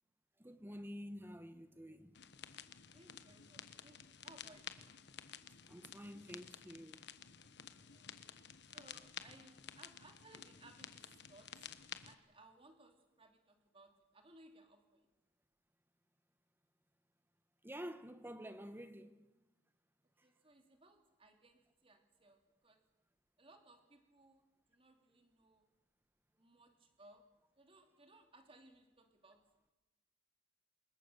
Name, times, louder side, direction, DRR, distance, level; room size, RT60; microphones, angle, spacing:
voice 1, 0.4-2.1 5.7-7.1 17.6-19.2, equal, 10° right, 1.3 m, -49 dB
sound 1, 2.1-12.1, left 8 dB, 60° left, 1.2 m, -53 dB
voice 2, 2.8-4.9 7.8-8.1 8.7-11.7 12.0-15.1 20.2-22.9 23.4-25.7 26.4-29.7, right 2 dB, 30° right, 2.8 m, -64 dB
27.0 x 21.5 x 6.8 m
head